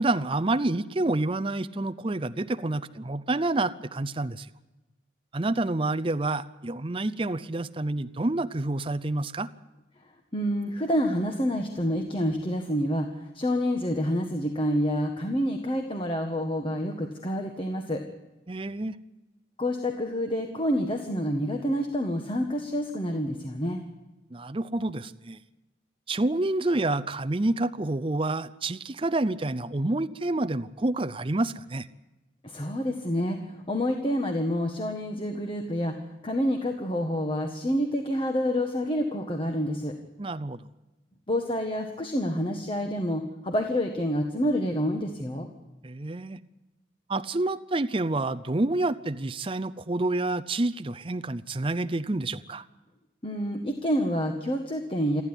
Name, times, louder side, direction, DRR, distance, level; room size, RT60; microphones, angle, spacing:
voice 1, 0.0-4.5 5.3-9.5 18.5-19.0 24.3-25.4 26.1-31.9 40.2-40.6 45.8-46.4 47.1-52.6, right 2 dB, 30° right, 13 dB, 0.6 m, -28 dB
voice 2, 10.3-18.0 19.6-23.8 32.4-33.4 33.7-39.9 41.3-45.5 53.2-55.2, equal, 30° left, 4 dB, 1.6 m, -28 dB
28.0 x 11.0 x 9.9 m, 1.1 s
head